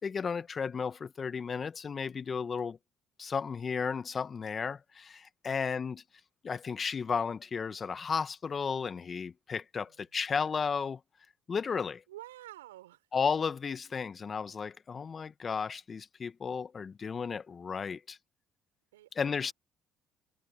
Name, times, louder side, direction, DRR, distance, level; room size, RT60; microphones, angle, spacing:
voice 1, 0.0-2.8 3.2-6.0 6.4-11.0 11.5-12.0 13.1-18.2 19.2-19.5, left 6 dB, 40° left, 1.7 m, -34 dB
voice 2, 5.4-5.8 9.8-10.2 12.1-13.1 18.9-19.5, right 15 dB, 90° right, 5.9 m, -51 dB
hypercardioid pair, 55°, 0 cm